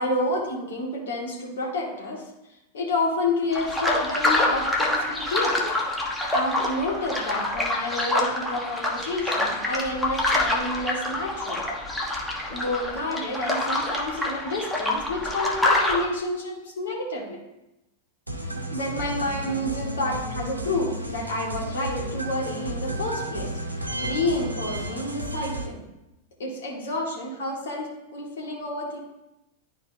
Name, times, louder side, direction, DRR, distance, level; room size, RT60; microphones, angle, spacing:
voice 1, 0.0-2.2 2.7-5.5 6.3-11.6 12.5-17.4 18.7-23.5 23.8-25.8 26.4-29.0, left 2 dB, 60° left, -1 dB, 1.9 m, -29 dB
sound 1, 3.5-16.1, left 1 dB, 5° left, 1.2 m, -26 dB
sound 2, 18.3-25.7, right 1 dB, 85° right, 0.8 m, -32 dB
11.0 x 4.3 x 2.8 m, 0.94 s
figure-of-eight pair, 90°, 0 cm